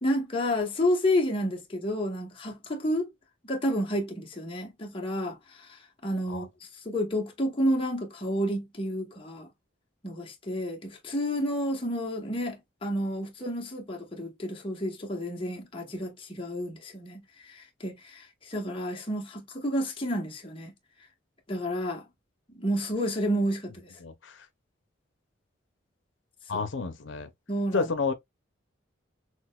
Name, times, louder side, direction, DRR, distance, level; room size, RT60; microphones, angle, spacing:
voice 1, 0.0-3.1 3.4-6.5 6.8-9.5 10.0-20.7 21.5-22.0 22.5-23.9 26.5-26.6 27.5-27.9, equal, 30° left, 1.0 m, -30 dB
voice 2, 24.0-24.4 26.5-27.3 27.7-28.1, left 4 dB, 75° left, 0.7 m, -30 dB
6.1 x 2.1 x 2.3 m
head